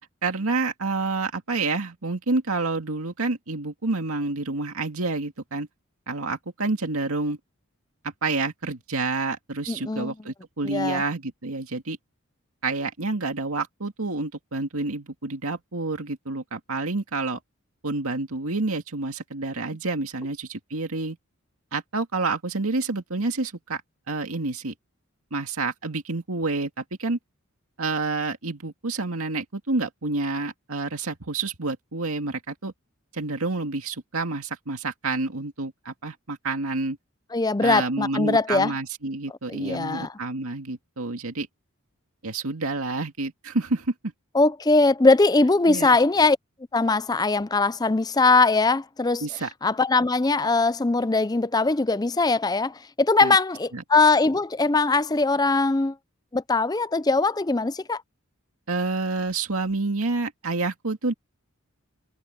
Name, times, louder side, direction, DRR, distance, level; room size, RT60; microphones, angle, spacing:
voice 1, 0.2-5.7 6.1-7.4 8.0-12.0 12.6-17.4 17.8-21.2 21.7-23.8 24.1-24.7 25.3-27.2 27.8-32.7 33.1-37.0 37.6-41.5 42.2-43.9 45.7-45.9 49.2-49.5 53.2-53.4 53.7-53.8 58.7-61.1, right 3 dB, 85° right, 2.1 m, -28 dB
voice 2, 9.7-10.1 10.6-11.0 37.3-38.7 39.5-40.1 44.3-46.4 46.7-49.3 49.6-55.9 56.3-58.0, left 3 dB, 20° left, 0.5 m, -21 dB
head